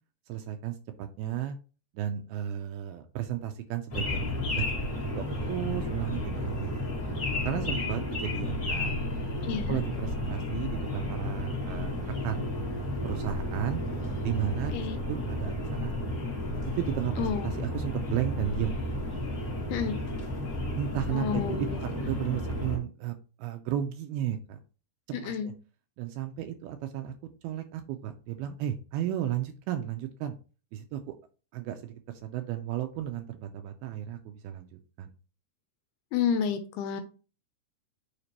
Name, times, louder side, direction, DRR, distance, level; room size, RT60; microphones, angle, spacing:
voice 1, 0.3-1.6 1.9-4.7 5.2-7.0 7.3-8.9 9.7-12.5 13.0-13.8 14.2-16.2 16.8-18.7 20.8-24.6 25.1-25.5 26.0-27.1 27.4-30.3 30.7-31.1 31.5-31.9 32.2-35.1, right 11 dB, 80° right, 6 dB, 2.3 m, -34 dB
sound 1, 3.9-22.8, left 1 dB, 40° left, 1.2 m, -32 dB
voice 2, 9.4-9.8 14.7-15.0 17.2-17.4 19.7-20.0 21.1-21.8 25.2-25.5 36.1-37.0, left 7 dB, 85° left, 9 dB, 2.4 m, -30 dB
6.6 x 5.1 x 2.9 m, 0.35 s
omnidirectional pair, 4.8 m